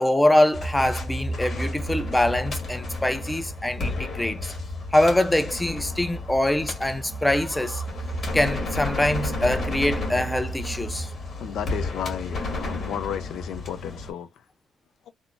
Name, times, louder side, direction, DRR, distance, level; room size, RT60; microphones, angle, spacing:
voice 1, 0.0-4.5 4.9-7.8 8.3-11.1, left 1 dB, 10° left, 0.5 m, -23 dB
sound 1, 0.5-14.1, left 1 dB, 50° left, 1.6 m, -31 dB
voice 2, 11.3-14.4, left 9 dB, 75° left, 0.4 m, -33 dB
3.5 x 2.0 x 2.4 m
cardioid pair, 90°, 0 cm